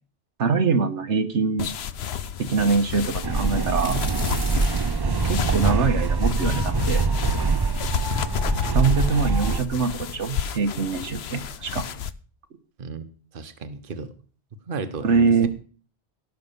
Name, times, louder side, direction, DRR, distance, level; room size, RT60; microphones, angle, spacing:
voice 1, 0.4-1.7 2.4-4.0 5.1-7.0 8.7-11.9 15.0-15.5, right 4 dB, 90° right, 8 dB, 1.6 m, -23 dB
sound 1, 1.6-12.1, left 8 dB, 65° left, 1.0 m, -31 dB
sound 2, 3.2-7.0 7.5-7.6 8.4-8.5 8.8-9.4 10.3-10.4 10.8-11.0, equal, 40° left, 3.1 m, -39 dB
sound 3, 3.2-9.6, right 4 dB, 30° right, 0.5 m, -24 dB
voice 2, 13.3-14.1 14.7-15.5, right 4 dB, 50° right, 10 dB, 1.3 m, -34 dB
17.0 x 6.0 x 6.9 m, 0.40 s
omnidirectional pair, 1.2 m